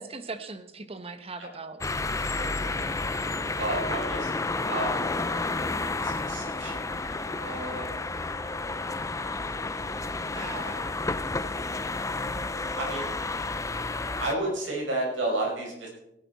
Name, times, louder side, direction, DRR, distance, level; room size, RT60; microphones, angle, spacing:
voice 1, 0.0-1.8 2.1-3.0, right 3 dB, 30° right, 10 dB, 1.0 m, -40 dB
sound 1, 1.8-14.3, left 3 dB, 15° left, 0.5 m, -31 dB
voice 2, 3.6-5.0 5.3-7.9 10.3-11.0 12.8-13.1 14.2-15.9, right 2 dB, 80° right, -2 dB, 5.6 m, -33 dB
17.0 x 11.0 x 4.1 m, 0.85 s
head